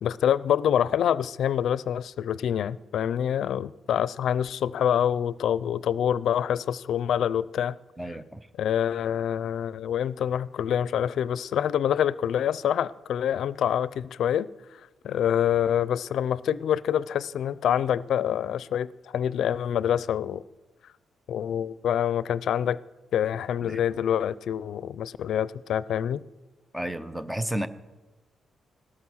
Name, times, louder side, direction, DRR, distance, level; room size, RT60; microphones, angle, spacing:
voice 1, 0.0-7.8 8.6-14.5 15.0-20.4 21.3-22.8 23.1-26.2, left 9 dB, 70° left, 0.5 m, -26 dB
voice 2, 8.0-8.5 23.6-23.8 26.7-27.7, right 1 dB, 5° right, 0.7 m, -32 dB
17.5 x 13.0 x 6.3 m
wide cardioid pair, 155°, 0 cm